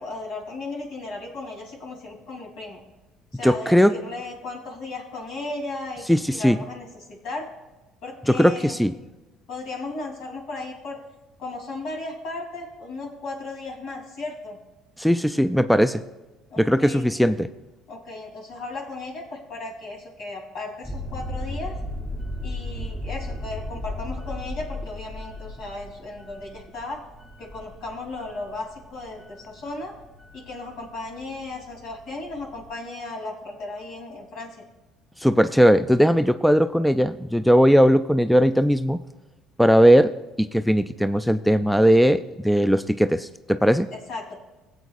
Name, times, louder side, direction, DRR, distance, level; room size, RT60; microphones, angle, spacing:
voice 1, 0.0-2.8 3.3-7.5 8.0-8.7 9.5-11.0 11.4-14.6 16.5-17.1 17.9-21.7 22.4-27.0 27.4-29.9 30.3-34.6 43.9-44.4, left 2 dB, 70° left, 0 dB, 3.3 m, -35 dB
voice 2, 3.4-3.9 6.1-6.6 8.3-8.9 15.0-16.0 16.6-17.5 35.2-39.0 39.6-40.1 40.4-43.9, equal, ahead, 11 dB, 0.4 m, -18 dB
sound 1, 20.8-32.7, left 1 dB, 15° left, 3.1 m, -36 dB
17.0 x 8.0 x 2.5 m, 1.1 s
supercardioid pair, 75°, 0 cm